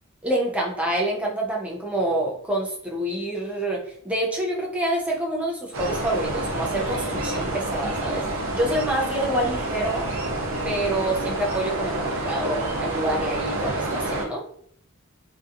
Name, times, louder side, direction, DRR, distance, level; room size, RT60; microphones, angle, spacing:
voice 1, 0.2-8.2 8.5-10.1 10.6-14.4, right 1 dB, 5° right, -2 dB, 0.5 m, -27 dB
sound 1, 5.7-14.3, right 2 dB, 75° right, 0.6 m, -28 dB
2.7 x 2.2 x 2.5 m, 0.63 s
head